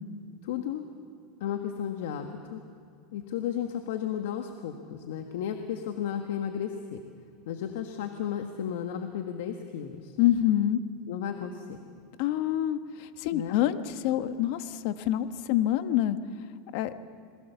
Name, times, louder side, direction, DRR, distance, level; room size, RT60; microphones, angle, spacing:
voice 1, 0.4-0.8 1.4-2.6 3.1-7.0 7.5-10.2 11.1-11.8 13.3-13.6, left 9 dB, 80° left, 6 dB, 1.5 m, -34 dB
voice 2, 10.2-10.8 12.2-16.2 16.7-16.9, left 12 dB, 60° left, 10 dB, 1.2 m, -26 dB
27.5 x 21.0 x 7.0 m, 2.4 s
supercardioid pair, 145°, 0 cm